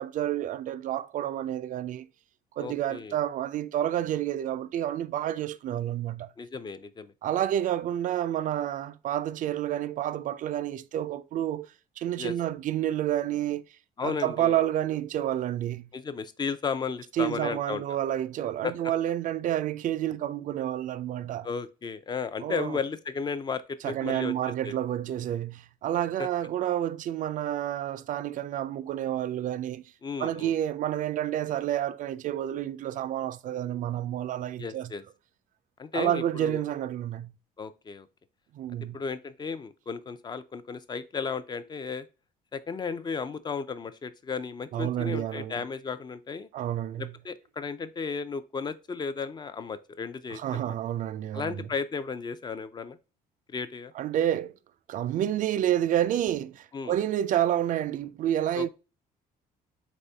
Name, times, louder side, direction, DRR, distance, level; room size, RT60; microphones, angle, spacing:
voice 1, 0.0-2.1 2.6-6.3 7.2-11.7 12.0-13.6 14.0-15.9 17.2-21.5 22.4-22.8 23.8-29.8 30.2-34.9 35.9-37.3 38.5-39.0 44.7-45.6 46.5-47.1 50.3-51.7 53.9-54.5 54.9-58.7, right 11 dB, 50° right, 0.4 m, -29 dB
voice 2, 2.6-3.1 6.4-7.1 12.2-12.3 14.0-14.6 15.9-17.8 18.6-18.7 21.4-24.3 24.6-24.8 26.2-26.3 30.0-30.5 34.6-35.0 35.8-36.6 37.6-38.1 38.9-42.1 42.5-46.5 47.0-50.8 51.3-53.0 53.5-53.9 56.7-56.9 58.5-58.7, left 5 dB, 25° left, 0.4 m, -34 dB
4.2 x 3.4 x 3.3 m
cardioid pair, 110°, 17 cm